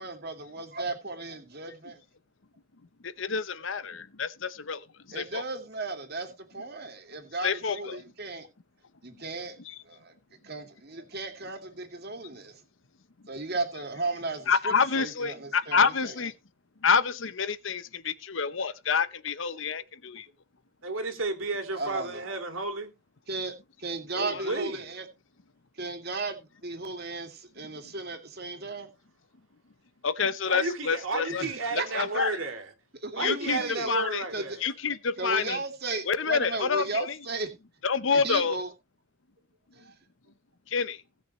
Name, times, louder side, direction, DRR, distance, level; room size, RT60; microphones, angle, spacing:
voice 1, 0.0-2.0 5.1-8.5 9.0-9.6 9.9-10.1 10.4-12.6 13.3-16.3 21.7-22.3 23.3-23.5 23.8-25.1 25.8-28.9 31.4-32.0 33.0-33.9 34.3-34.6 35.2-37.5 38.1-38.7 39.7-39.9, right 3 dB, 50° right, 2.5 m, -35 dB
voice 2, 3.0-4.8 5.1-5.4 7.4-8.0 14.5-16.3 16.8-20.2 30.0-31.4 31.9-32.3 33.2-33.6 33.9-34.2 34.6-35.6 36.1-37.1 37.8-38.6 40.7-41.0, left 5 dB, 70° left, 0.8 m, -27 dB
voice 3, 20.8-22.9 24.1-24.9 30.4-32.7 33.1-34.6, right 3 dB, 80° right, 2.8 m, -32 dB
18.5 x 6.6 x 3.1 m
head